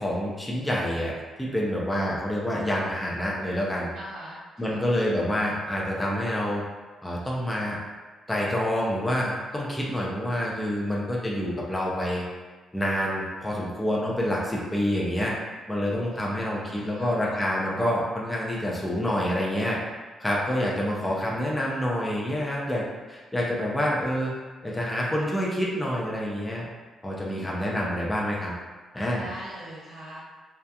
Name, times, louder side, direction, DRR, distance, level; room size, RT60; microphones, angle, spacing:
voice 1, 0.0-3.9 4.6-6.6 7.0-7.8 8.3-12.2 12.7-15.4 15.7-19.8 20.2-22.8 23.1-24.4 24.6-26.6 27.0-28.5 28.9-29.3, equal, 10° left, -4 dB, 0.4 m, -27 dB
voice 2, 3.9-4.8 16.1-17.1 27.2-28.0 29.2-30.2, right 1 dB, 80° right, -9 dB, 0.6 m, -44 dB
2.7 x 2.3 x 2.2 m, 1.3 s
cardioid pair, 125°, 0 cm